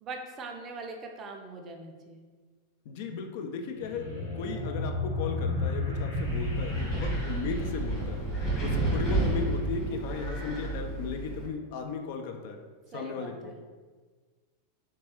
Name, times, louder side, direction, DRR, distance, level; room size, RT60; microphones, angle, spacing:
voice 1, 0.0-2.2 12.9-13.5, right 3 dB, 30° right, 3 dB, 0.4 m, -41 dB
voice 2, 2.9-8.2 8.6-12.6 12.9-13.5, left 5 dB, 50° left, 5 dB, 0.3 m, -36 dB
sound 1, 3.8-8.7, left 2 dB, 75° left, 0.7 m, -33 dB
Wind, 6.2-11.5, right 2 dB, 25° left, 1.2 m, -31 dB
3.4 x 2.9 x 3.0 m, 1.4 s
figure-of-eight pair, 90°, 0 cm